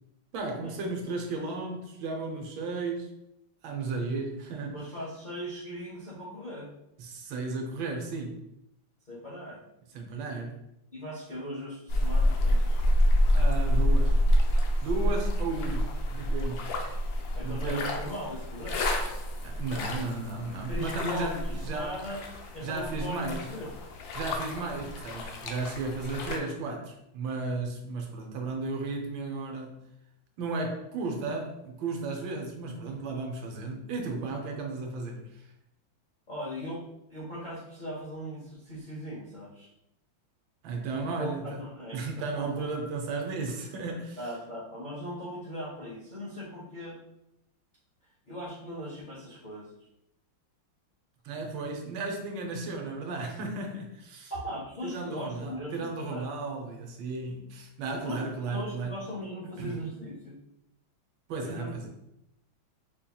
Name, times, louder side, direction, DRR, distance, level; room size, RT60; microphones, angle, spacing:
voice 1, 0.3-3.1 3.6-4.9 7.0-8.4 9.9-10.6 13.3-14.2 14.8-16.7 17.4-18.0 19.4-21.9 22.6-23.5 24.1-29.8 30.4-35.4 40.6-41.6 41.9-44.2 51.2-54.3 54.8-59.0 59.6-59.8 61.3-61.9, right 3 dB, 80° right, 2 dB, 1.4 m, -34 dB
voice 2, 4.7-6.7 9.1-9.6 10.9-12.8 17.3-19.0 20.7-22.2 22.5-23.7 36.3-39.7 41.0-42.7 44.2-47.0 48.2-49.7 54.3-56.3 57.9-60.4 61.4-61.7, equal, 60° left, -7 dB, 0.5 m, -39 dB
sound 1, 11.9-26.4, equal, 80° left, 0.8 m, -28 dB
4.8 x 2.8 x 2.3 m, 0.84 s
omnidirectional pair, 2.1 m